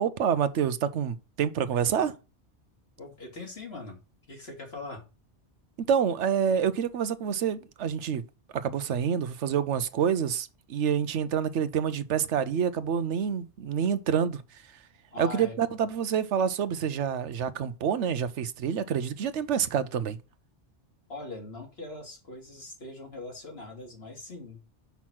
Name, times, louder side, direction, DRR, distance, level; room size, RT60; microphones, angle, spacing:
voice 1, 0.0-2.1 5.8-8.2 8.5-14.4 15.2-20.2, right 8 dB, 85° right, 1.0 m, -27 dB
voice 2, 3.0-4.0 4.3-5.0 15.1-15.6 21.1-24.6, left 2 dB, 60° left, 2.7 m, -41 dB
6.0 x 5.7 x 6.1 m
omnidirectional pair, 1.2 m